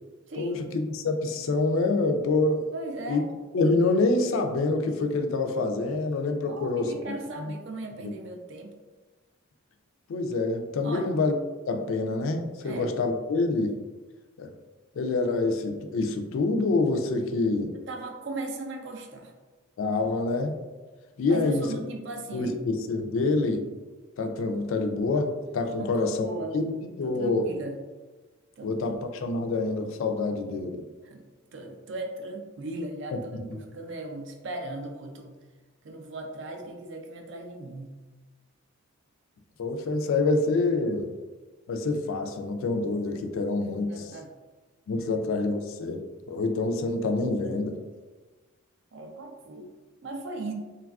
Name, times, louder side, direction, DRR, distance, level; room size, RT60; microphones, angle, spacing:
voice 1, 0.3-2.7 3.1-3.2 3.5-6.9 7.4-7.5 8.0-8.1 10.1-11.4 11.7-13.7 14.4-14.5 15.0-17.7 19.8-20.6 21.2-21.8 22.3-23.6 24.2-26.3 26.5-26.7 27.0-27.5 28.6-30.8 33.3-33.6 39.6-41.1 41.7-44.1 44.9-47.8, left 3 dB, 65° left, 5 dB, 0.3 m, -26 dB
voice 2, 2.7-3.3 6.5-8.7 10.8-11.1 12.6-12.9 17.7-19.3 21.3-22.6 25.8-26.6 27.0-27.8 28.6-28.7 31.0-31.2 31.5-33.2 33.5-35.3 35.8-38.0 43.9-44.3 45.0-45.1 48.9-49.7 50.0-50.5, right 2 dB, 55° right, 3 dB, 0.4 m, -37 dB
3.2 x 2.3 x 2.3 m, 1.3 s
head